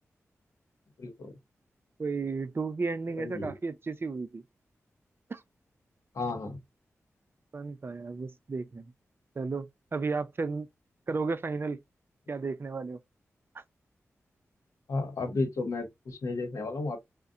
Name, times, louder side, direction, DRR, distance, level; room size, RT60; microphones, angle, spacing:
voice 1, 1.0-1.4 3.2-3.5 6.1-6.6 14.9-17.0, left 3 dB, 75° left, 0.9 m, -33 dB
voice 2, 2.0-4.4 5.3-5.4 7.5-8.9 9.4-9.7 9.9-10.7 11.1-11.8 12.3-13.0 13.5-13.6, right 4 dB, 45° right, 0.4 m, -33 dB
2.6 x 2.1 x 2.4 m
cardioid pair, 50°, 6 cm